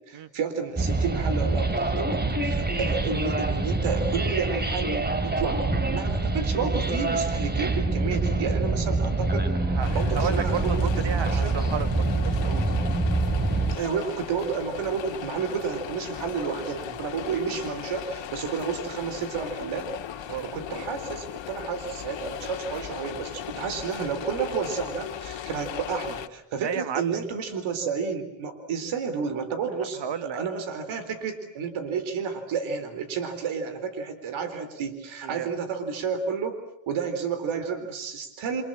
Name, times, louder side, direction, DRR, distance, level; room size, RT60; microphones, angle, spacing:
voice 1, 0.1-9.5 9.9-10.8 11.1-11.6 13.7-19.9 20.2-36.6 36.9-38.6, right 6 dB, 85° right, 9 dB, 4.1 m, -31 dB
sound 1, 0.8-13.8, right 2 dB, 20° right, 3.0 m, -25 dB
voice 2, 9.6-12.6 17.4-17.5 20.3-20.8 23.5-23.7 26.6-27.2 29.9-30.4 35.2-35.5, right 8 dB, 65° right, 11 dB, 1.8 m, -33 dB
sound 2, 9.8-26.3, left 10 dB, 70° left, 1.9 m, -38 dB
28.0 x 27.0 x 7.6 m, 0.82 s
cardioid pair, 75°, 47 cm